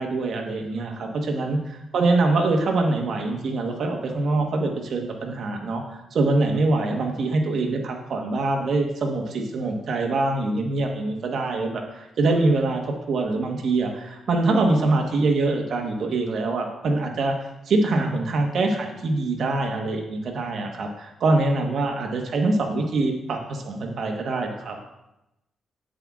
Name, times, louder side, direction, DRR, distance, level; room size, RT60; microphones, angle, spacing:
voice 1, 0.0-17.3 17.7-24.8, right 2 dB, 65° right, 2 dB, 1.1 m, -24 dB
7.6 x 7.4 x 2.4 m, 0.91 s
cardioid pair, 105°, 0 cm